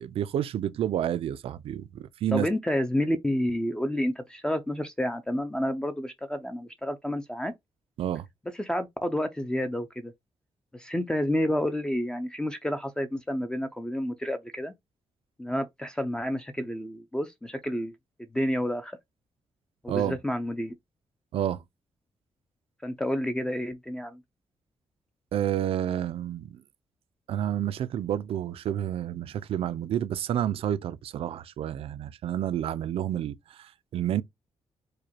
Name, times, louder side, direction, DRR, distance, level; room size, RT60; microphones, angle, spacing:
voice 1, 0.0-2.5 8.0-8.3 19.9-20.2 21.3-21.6 25.3-26.6 27.3-34.2, right 10 dB, 70° right, 0.4 m, -29 dB
voice 2, 2.3-7.5 8.5-10.1 10.7-14.7 15.4-17.9 18.2-19.0 19.8-20.7 22.8-24.2, left 1 dB, 10° left, 0.4 m, -30 dB
4.8 x 2.2 x 2.8 m
wide cardioid pair, 165°, 10 cm